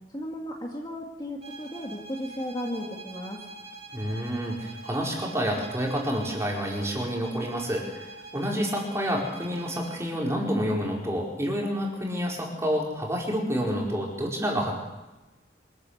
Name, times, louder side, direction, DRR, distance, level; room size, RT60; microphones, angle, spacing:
voice 1, 0.1-3.4, equal, 20° left, 0 dB, 2.2 m, -35 dB
sound 1, 1.4-10.1, right 3 dB, 30° right, 2.5 m, -45 dB
voice 2, 3.9-14.8, equal, 15° right, -2 dB, 4.7 m, -29 dB
25.5 x 12.5 x 8.0 m, 1.1 s
head